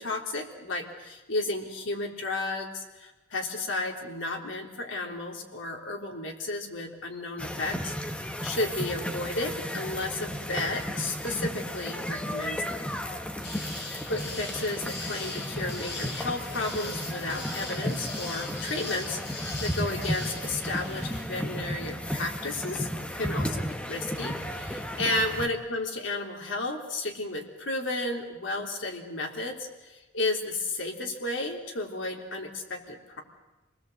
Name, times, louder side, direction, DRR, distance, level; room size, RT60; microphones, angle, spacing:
voice 1, 0.0-7.9 8.4-12.9 14.0-33.2, left 2 dB, 75° left, 1 dB, 3.5 m, -33 dB
sound 1, 7.4-25.5, equal, 5° left, 1.3 m, -34 dB
sound 2, 13.4-21.2, left 3 dB, 60° left, 6.3 m, -40 dB
27.0 x 19.5 x 8.0 m, 1.1 s
head